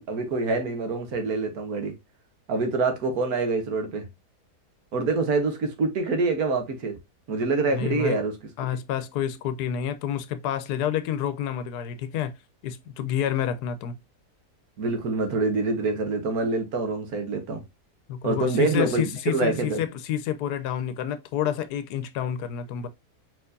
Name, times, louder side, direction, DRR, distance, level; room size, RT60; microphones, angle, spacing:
voice 1, 0.0-1.9 2.5-4.0 4.9-6.9 7.3-8.3 14.8-17.6 18.2-19.8, right 3 dB, 70° right, 1.5 m, -26 dB
voice 2, 7.7-8.2 8.6-12.3 12.6-13.9 18.1-22.9, left 9 dB, 80° left, 1.1 m, -29 dB
4.3 x 4.1 x 2.6 m
omnidirectional pair, 1.7 m